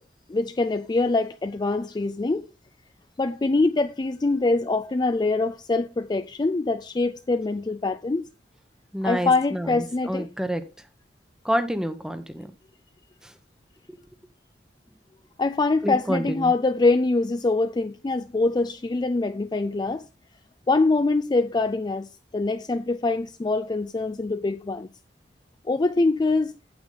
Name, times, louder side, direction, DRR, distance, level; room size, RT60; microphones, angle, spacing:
voice 1, 0.3-2.5 3.2-8.3 9.0-10.3 15.4-20.1 20.7-22.1 22.3-24.9 25.7-26.5, left 3 dB, 25° left, 0.3 m, -24 dB
voice 2, 8.9-9.8 10.0-10.6 11.4-12.5 13.2-13.3 13.9-14.0 15.8-16.5, equal, 5° right, 0.9 m, -28 dB
8.5 x 7.9 x 3.9 m
head